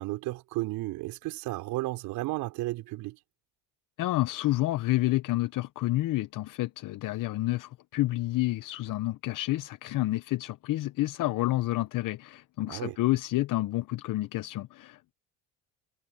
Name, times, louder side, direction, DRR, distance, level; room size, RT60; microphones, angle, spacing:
voice 1, 0.0-3.2 12.7-13.0, right 19 dB, 75° right, 4.1 m, -33 dB
voice 2, 4.0-15.1, left 17 dB, 65° left, 1.0 m, -29 dB
supercardioid pair, 70°, 35 cm